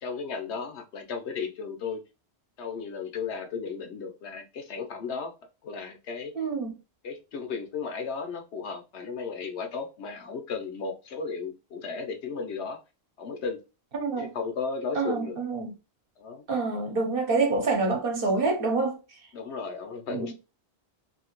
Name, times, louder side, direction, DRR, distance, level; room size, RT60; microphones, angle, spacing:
voice 1, 0.0-2.0 2.6-5.3 5.6-6.3 7.0-12.8 13.2-13.6 14.2-15.4 16.2-16.4 19.3-20.3, left 5 dB, 85° left, 1.0 m, -35 dB
voice 2, 6.3-6.7 13.9-14.3 14.9-15.7 16.5-19.2 20.1-20.3, right 3 dB, 60° right, 1.0 m, -27 dB
2.8 x 2.7 x 2.9 m
omnidirectional pair, 1.1 m